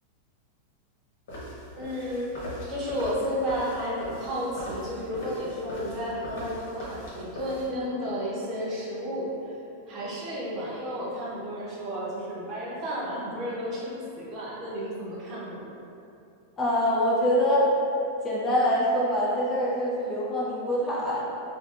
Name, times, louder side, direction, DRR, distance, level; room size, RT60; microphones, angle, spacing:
sound 1, 1.3-7.7, equal, 75° left, 1.0 m, -40 dB
voice 1, 1.8-2.3 2.7-9.6 9.9-15.7, equal, 35° right, -6 dB, 0.7 m, -32 dB
voice 2, 16.6-17.7 18.2-21.2, equal, 20° left, -6 dB, 0.5 m, -24 dB
3.2 x 2.2 x 2.4 m, 2.7 s
supercardioid pair, 135°, 0 cm